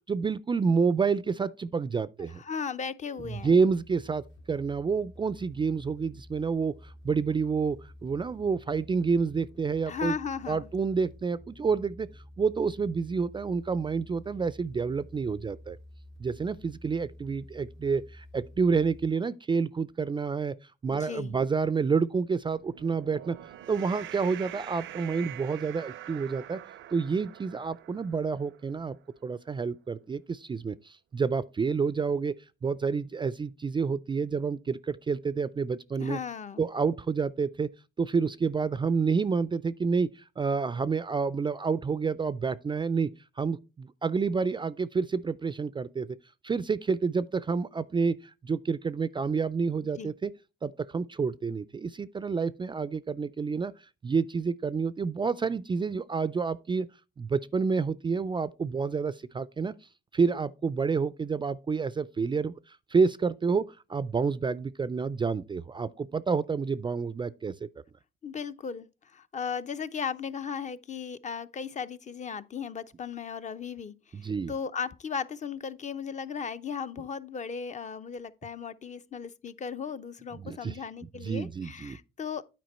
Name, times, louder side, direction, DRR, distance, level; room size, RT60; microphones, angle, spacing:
voice 1, 0.1-2.4 3.3-10.2 10.5-12.1 12.4-15.8 16.2-20.6 20.8-23.4 23.7-26.6 26.9-29.0 29.2-32.3 32.6-36.2 36.6-37.7 38.0-43.1 43.4-46.1 46.4-48.2 48.4-50.3 50.6-53.7 54.0-56.9 57.2-59.7 60.1-67.7 74.1-74.5 80.4-80.8 81.2-82.0, right 5 dB, 25° right, 0.3 m, -29 dB
voice 2, 2.3-3.5 9.9-10.7 20.9-21.4 36.0-36.6 50.0-50.1 68.2-82.4, left 6 dB, 35° left, 0.6 m, -36 dB
sound 1, 3.2-19.1, left 1 dB, 85° left, 2.8 m, -50 dB
sound 2, 22.4-29.0, right 13 dB, 75° right, 0.5 m, -45 dB
9.3 x 4.5 x 4.2 m
cardioid pair, 90°, 20 cm